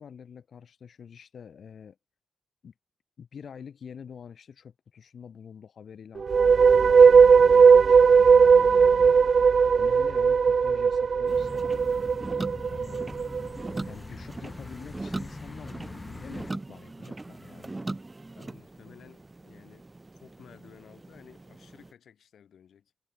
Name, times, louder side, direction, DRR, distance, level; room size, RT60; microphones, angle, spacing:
voice 1, 0.0-2.0 2.6-2.7 3.2-9.2 9.7-11.7 12.7-13.0 13.9-17.8, left 7 dB, 70° left, 3.7 m, -46 dB
sound 1, 6.2-13.5, right 6 dB, 55° right, 0.4 m, -18 dB
sound 2, 11.3-16.5, left 2 dB, 25° left, 6.9 m, -43 dB
sound 3, 11.3-21.9, right 2 dB, 20° right, 2.2 m, -40 dB
voice 2, 12.8-13.2 18.4-19.9 20.1-22.9, left 8 dB, 85° left, 7.7 m, -54 dB
wide cardioid pair, 100°, 0 cm